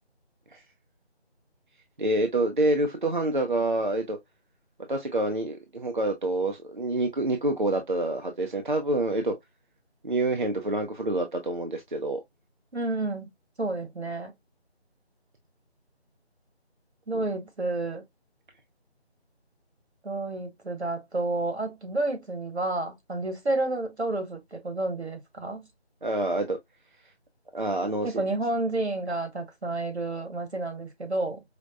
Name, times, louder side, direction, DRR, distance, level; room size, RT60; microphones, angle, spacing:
voice 1, 2.0-4.2 4.9-9.4 10.0-12.2 26.0-26.6 27.5-28.2, right 2 dB, 50° right, 0.5 m, -27 dB
voice 2, 12.7-13.3 13.6-14.3 17.1-18.0 20.0-25.6 28.0-31.4, right 2 dB, 75° right, 1.6 m, -30 dB
4.9 x 2.0 x 2.4 m
figure-of-eight pair, 165°, 33 cm